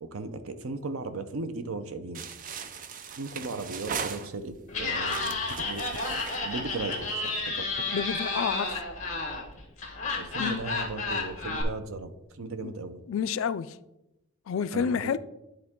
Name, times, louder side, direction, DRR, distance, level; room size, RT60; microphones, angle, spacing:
voice 1, 0.0-2.2 3.2-7.7 10.2-12.1 12.4-13.0 14.7-15.0, right 3 dB, 90° right, 0.6 m, -37 dB
sound 1, 2.1-4.6 5.0-7.3, right 6 dB, 40° right, 0.4 m, -38 dB
Laughter, 4.7-11.6, left 3 dB, 35° left, 1.4 m, -32 dB
voice 2, 7.9-8.7 10.4-10.6 12.6-12.7 13.1-13.8 14.5-15.2, left 7 dB, 70° left, 0.3 m, -29 dB
10.5 x 3.8 x 3.6 m
head